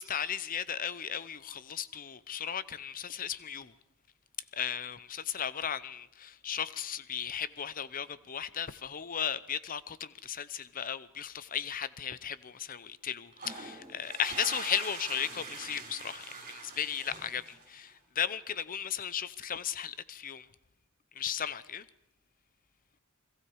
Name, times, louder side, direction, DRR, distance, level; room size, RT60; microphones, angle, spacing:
voice 1, 0.0-3.7 4.5-20.5 21.1-21.9, left 8 dB, 40° left, 0.8 m, -36 dB
sound 1, 13.3-17.9, right 4 dB, 40° right, 5.4 m, -43 dB
29.5 x 21.5 x 4.8 m
head